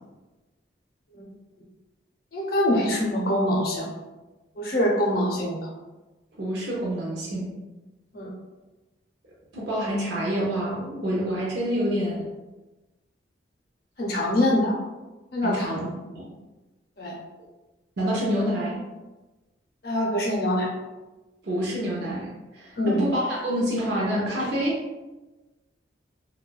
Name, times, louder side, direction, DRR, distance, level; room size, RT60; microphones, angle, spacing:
voice 1, 2.3-3.9 4.6-5.6 8.1-8.3 14.0-14.7 15.3-15.8 17.0-17.2 19.8-20.7 22.8-23.0, left 1 dB, 55° left, -2 dB, 0.5 m, -24 dB
voice 2, 6.4-7.5 9.5-12.3 15.4-15.9 16.1-16.3 18.0-18.8 21.4-24.8, equal, 65° right, -5 dB, 0.5 m, -27 dB
2.6 x 2.1 x 2.2 m, 1.1 s
head